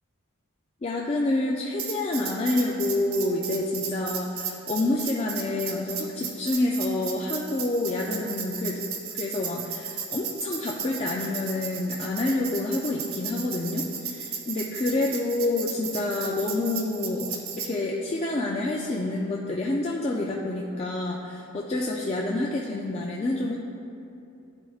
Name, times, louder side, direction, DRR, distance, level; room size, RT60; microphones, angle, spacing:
voice 1, 0.8-8.8 9.1-23.6, left 2 dB, 30° left, -3 dB, 0.3 m, -28 dB
Tambourine, 1.8-17.7, right 7 dB, 85° right, 0.7 m, -35 dB
10.5 x 4.4 x 2.3 m, 2.7 s
head